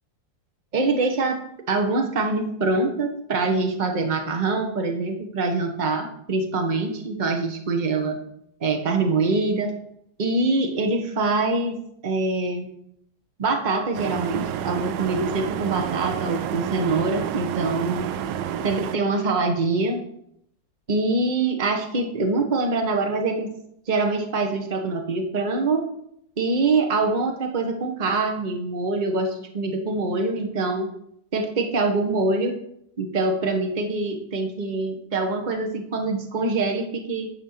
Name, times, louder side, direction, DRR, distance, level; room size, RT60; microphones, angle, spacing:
voice 1, 0.7-1.4 1.7-8.2 8.6-9.7 10.2-12.7 13.4-18.1 18.6-20.1 20.9-23.5 23.9-25.9 26.4-30.9 31.3-32.6 33.0-37.3, right 3 dB, 30° right, 4 dB, 1.0 m, -24 dB
sound 1, 13.9-19.0, right 10 dB, 75° right, 1.2 m, -29 dB
9.8 x 4.3 x 6.6 m, 0.72 s
omnidirectional pair, 2.1 m